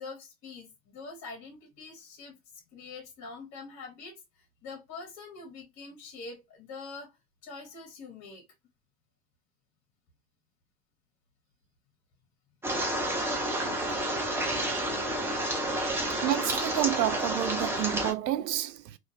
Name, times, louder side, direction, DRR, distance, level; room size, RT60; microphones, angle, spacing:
voice 1, 0.0-7.1 7.4-8.4, left 4 dB, 35° left, 1.3 m, -45 dB
sound 1, 12.6-18.1, right 1 dB, 5° right, 0.4 m, -30 dB
voice 2, 16.2-19.0, right 13 dB, 85° right, 0.5 m, -29 dB
2.8 x 2.4 x 2.8 m
hypercardioid pair, 95°, 49 cm